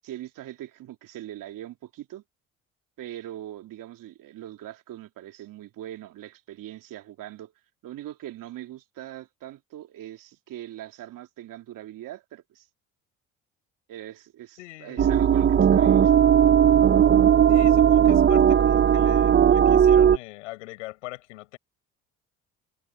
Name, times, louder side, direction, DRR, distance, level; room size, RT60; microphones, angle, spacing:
voice 1, 0.0-2.2 3.0-7.5 7.8-12.7 13.9-16.1, right 13 dB, 65° right, 2.9 m, -41 dB
voice 2, 14.6-15.1 17.5-21.6, left 19 dB, 90° left, 7.4 m, -41 dB
sound 1, 15.0-20.2, right 9 dB, 30° right, 0.7 m, -17 dB
hypercardioid pair, 65°, 35 cm